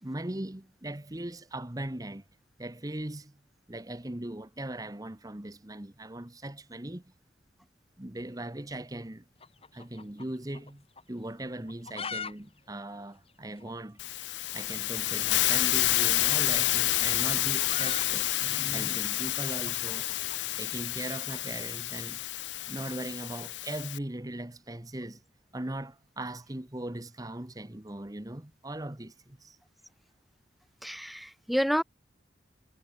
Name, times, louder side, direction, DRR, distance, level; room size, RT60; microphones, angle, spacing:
voice 1, 0.0-2.2 2.6-3.4 3.7-7.0 8.0-9.2 9.7-14.0 14.5-18.3 18.7-20.1 20.5-22.2 22.7-25.2 25.5-29.6, right 1 dB, 20° right, 1.1 m, -39 dB
sound 1, 9.4-10.7 11.0-11.1 11.6-12.3 12.6-12.7 12.9-13.0 13.6-13.7 14.9-15.1 16.2-20.4, left 6 dB, 35° left, 2.6 m, -41 dB
Hiss, 14.0-24.0, left 16 dB, 80° left, 0.5 m, -29 dB
voice 2, 18.4-18.9 30.8-31.8, equal, ahead, 1.2 m, -30 dB
head